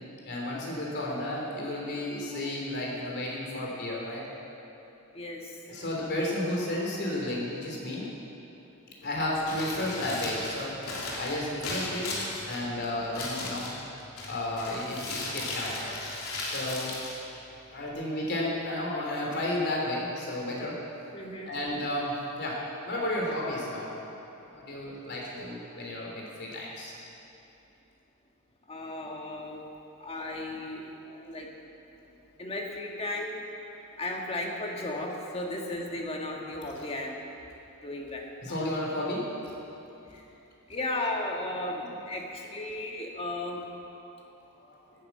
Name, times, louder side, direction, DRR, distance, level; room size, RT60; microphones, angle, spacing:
voice 1, 0.3-4.2 5.7-8.1 9.0-12.1 12.5-13.7 14.3-15.9 16.4-16.9 17.7-20.8 21.4-23.9 24.5-26.9 31.0-31.4 38.4-39.3 41.8-41.9 44.6-44.8, left 1 dB, 50° left, -3 dB, 3.4 m, -32 dB
voice 2, 5.1-5.5 21.1-21.5 28.7-29.7 30.0-30.9 31.3-31.5 32.4-33.4 34.0-37.2 37.8-38.6 40.1-40.2 40.7-43.6, left 2 dB, 25° left, 0 dB, 1.6 m, -35 dB
Crumpling crinkling, 9.4-17.9, left 2 dB, 75° left, 3.3 m, -37 dB
12.0 x 10.0 x 8.3 m, 2.8 s
head